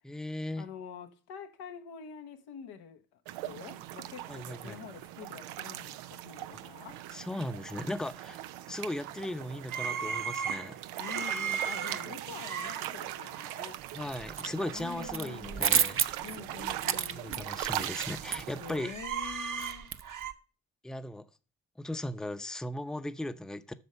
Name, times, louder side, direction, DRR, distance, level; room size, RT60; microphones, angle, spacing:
voice 1, 0.0-0.6 4.3-4.8 6.5-6.6 7.1-8.4 8.7-10.8 13.9-16.1 17.2-18.9 20.8-21.3 21.8-23.7, left 1 dB, ahead, 0.7 m, -37 dB
voice 2, 0.6-7.0 11.0-13.8 14.7-15.9 16.2-17.5 18.6-19.9, left 7 dB, 80° left, 1.2 m, -46 dB
sound 1, 3.3-18.8, right 13 dB, 85° right, 0.6 m, -41 dB
sound 2, 9.7-13.6 13.9-14.2 14.4-15.9 16.3-16.4 16.9-18.3 18.5-20.3, right 7 dB, 55° right, 1.3 m, -38 dB
sound 3, 13.9-14.5 14.8-20.3, right 7 dB, 35° right, 0.7 m, -31 dB
8.1 x 6.6 x 5.6 m
hypercardioid pair, 50°, 38 cm